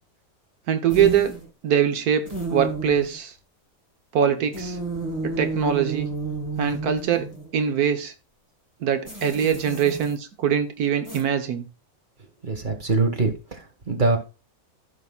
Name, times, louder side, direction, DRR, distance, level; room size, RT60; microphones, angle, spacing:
voice 1, 0.7-1.4 1.6-3.3 4.1-4.8 5.2-6.1 6.6-8.1 8.8-11.6, right 8 dB, 90° right, 1.5 m, -23 dB
sound 1, 0.9-1.5 2.2-3.2 4.5-7.5 9.0-10.1 11.0-11.2, right 3 dB, 10° right, 3.4 m, -31 dB
voice 2, 12.5-14.2, right 3 dB, 35° right, 1.6 m, -23 dB
15.0 x 5.7 x 2.3 m
omnidirectional pair, 1.6 m